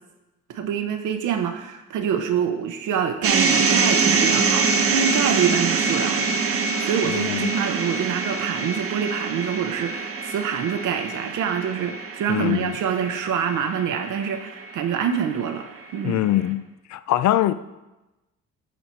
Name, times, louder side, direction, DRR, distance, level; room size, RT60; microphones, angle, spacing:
voice 1, 0.5-15.7 15.9-16.2, right 8 dB, 85° right, 1.0 m, -26 dB
sound 1, 3.2-15.4, right 4 dB, 50° right, 1.0 m, -24 dB
voice 2, 7.1-7.5 12.3-12.8 16.0-16.6 16.9-17.5, left 14 dB, 65° left, 0.5 m, -22 dB
11.5 x 4.2 x 4.5 m
cardioid pair, 90°, 30 cm